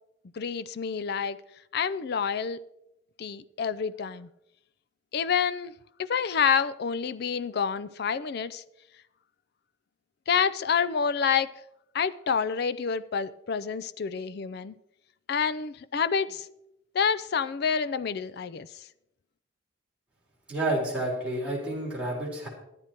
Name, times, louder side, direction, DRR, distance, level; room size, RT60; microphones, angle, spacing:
voice 1, 0.3-1.4 1.7-2.6 3.2-4.3 5.1-8.6 10.3-11.5 11.9-14.8 15.3-16.5 16.9-18.8, left 6 dB, 55° left, 15 dB, 0.4 m, -28 dB
voice 2, 20.5-22.5, right 1 dB, 5° right, -6 dB, 3.5 m, -30 dB
13.5 x 10.5 x 4.4 m, 0.83 s
head